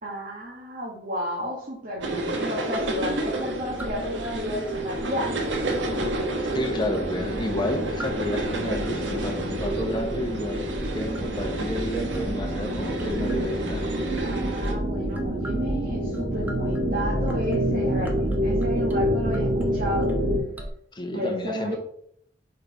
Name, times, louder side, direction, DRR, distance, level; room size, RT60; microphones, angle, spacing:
voice 1, 0.0-5.4 14.2-20.1 21.1-21.8, equal, 50° right, -4 dB, 1.6 m, -32 dB
sound 1, 2.0-14.7, right 1 dB, 85° right, 1.1 m, -31 dB
sound 2, 2.1-20.4, equal, 25° right, 1.8 m, -29 dB
sound 3, 2.5-20.7, right 3 dB, 10° right, 0.8 m, -39 dB
voice 2, 6.5-13.9 20.9-21.8, left 1 dB, 25° left, 4 dB, 0.9 m, -31 dB
5.0 x 4.7 x 4.5 m, 0.68 s
head